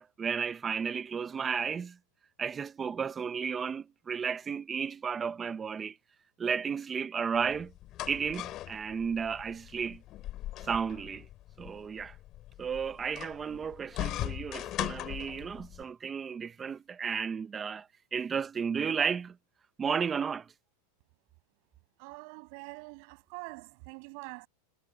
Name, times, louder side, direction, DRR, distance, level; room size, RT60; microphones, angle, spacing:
voice 1, 0.0-2.0 2.4-6.0 6.4-7.7 8.1-10.0 10.6-11.3 11.6-12.2 12.6-19.3 19.8-20.5, right 6 dB, 20° right, 1.1 m, -33 dB
sound 1, 7.4-15.8, left 14 dB, 35° left, 3.0 m, -40 dB
voice 2, 22.0-24.5, right 35 dB, 55° right, 6.7 m, -45 dB
supercardioid pair, 135°, 0 cm